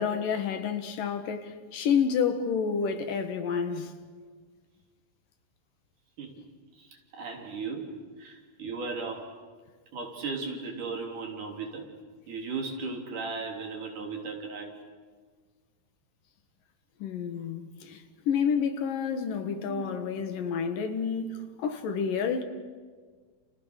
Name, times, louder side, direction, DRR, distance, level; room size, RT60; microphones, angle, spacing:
voice 1, 0.0-3.9 17.0-22.4, left 6 dB, 70° left, 3.2 m, -29 dB
voice 2, 6.7-7.9 8.2-9.3 9.9-11.9 12.3-14.8 19.7-20.0, right 4 dB, 60° right, 4.8 m, -36 dB
30.0 x 30.0 x 6.6 m
omnidirectional pair, 4.1 m